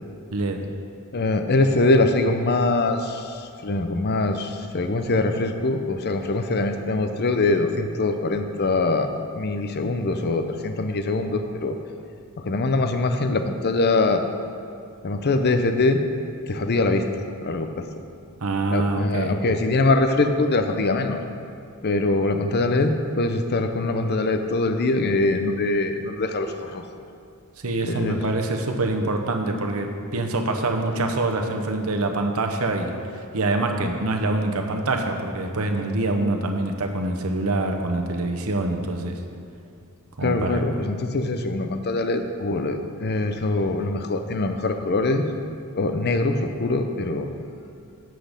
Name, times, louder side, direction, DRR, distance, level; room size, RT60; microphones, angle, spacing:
voice 1, 0.3-0.6 18.4-19.4 27.6-32.9 33.3-39.2 40.2-40.6, right 2 dB, 75° right, 4 dB, 0.9 m, -25 dB
voice 2, 1.1-9.1 9.4-11.8 12.4-14.2 15.0-16.0 16.5-17.9 18.7-21.2 21.8-26.9 27.8-28.2 40.2-45.3 45.8-47.3, left 2 dB, 50° left, 7 dB, 0.6 m, -23 dB
8.3 x 7.7 x 5.1 m, 2.5 s
head